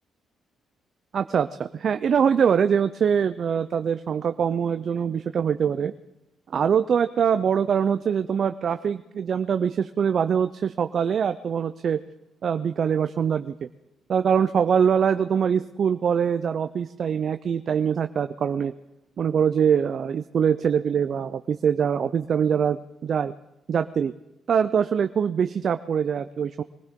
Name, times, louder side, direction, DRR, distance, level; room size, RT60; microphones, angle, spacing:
voice 1, 1.1-5.9 6.5-12.0 12.4-13.7 14.1-18.7 19.2-23.3 23.7-24.1 24.5-26.6, right 7 dB, 55° right, 10 dB, 0.5 m, -23 dB
23.0 x 15.5 x 3.7 m, 0.89 s
cardioid pair, 90°, 0 cm